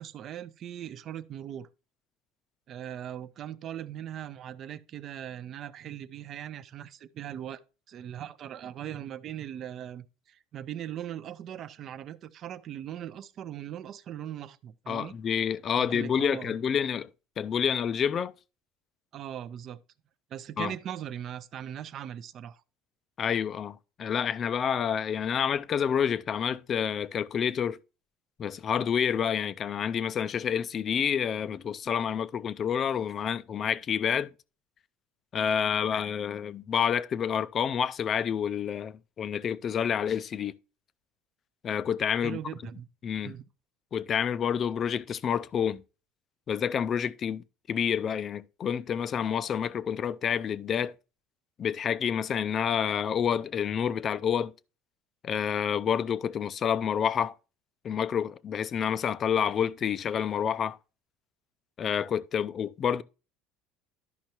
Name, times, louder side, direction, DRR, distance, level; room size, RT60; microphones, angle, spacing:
voice 1, 0.0-1.7 2.7-7.6 7.9-15.1 15.8-16.5 19.1-19.8 20.3-22.6 42.2-42.9 43.2-43.4, right 10 dB, 45° right, 0.5 m, -39 dB
voice 2, 14.9-17.1 17.4-18.3 20.6-20.7 23.2-27.8 28.4-34.3 35.3-40.5 41.6-42.4 43.0-43.3 43.9-45.8 46.5-50.9 51.6-54.5 55.2-57.3 57.8-60.8 61.8-63.0, left 8 dB, 35° left, 0.4 m, -28 dB
11.5 x 5.4 x 2.9 m
cardioid pair, 125°, 0 cm